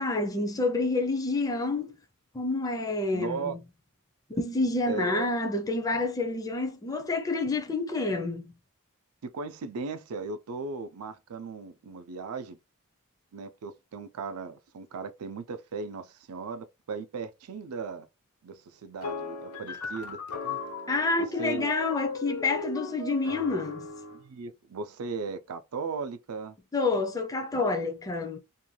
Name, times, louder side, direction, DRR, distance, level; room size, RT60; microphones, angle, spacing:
voice 1, 0.0-1.9 2.3-3.6 4.3-8.4 20.9-23.9 26.7-28.4, left 3 dB, 15° left, 0.4 m, -28 dB
voice 2, 3.1-3.6 4.9-5.3 9.2-12.6 13.3-18.1 18.4-20.6 21.2-21.7 24.1-26.6, right 4 dB, 85° right, 0.4 m, -37 dB
sound 1, 19.0-24.2, left 3 dB, 75° left, 0.7 m, -37 dB
2.5 x 2.2 x 3.1 m
head